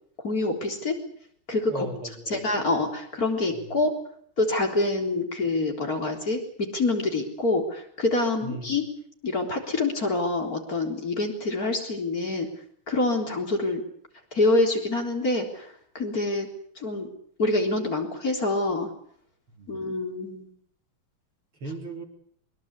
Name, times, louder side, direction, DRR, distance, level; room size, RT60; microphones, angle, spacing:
voice 1, 0.2-0.9 1.5-1.9 2.3-3.9 4.4-8.8 9.2-12.5 12.9-13.8 14.3-16.5 16.8-17.1 17.4-18.9 19.7-20.5, left 2 dB, 40° left, 3 dB, 4.2 m, -26 dB
voice 2, 1.7-2.4 3.5-3.8 8.4-8.7 19.5-19.8 21.6-22.0, right 1 dB, 80° right, 2 dB, 4.9 m, -37 dB
23.0 x 22.0 x 8.3 m, 0.64 s
omnidirectional pair, 2.4 m